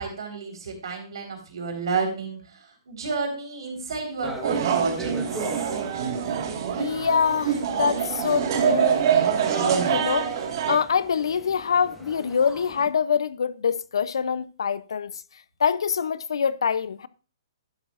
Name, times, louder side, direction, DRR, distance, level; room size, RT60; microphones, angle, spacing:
voice 1, 0.0-5.8, right 4 dB, 75° right, 4.1 m, -31 dB
sound 1, 4.2-12.9, right 1 dB, 5° right, 1.4 m, -42 dB
sound 2, 4.4-10.8, right 8 dB, 55° right, 1.8 m, -25 dB
voice 2, 6.8-9.1 9.6-10.3 10.7-15.2 15.6-17.1, left 7 dB, 80° left, 0.6 m, -25 dB
12.0 x 10.5 x 2.5 m
hypercardioid pair, 145°, 3 cm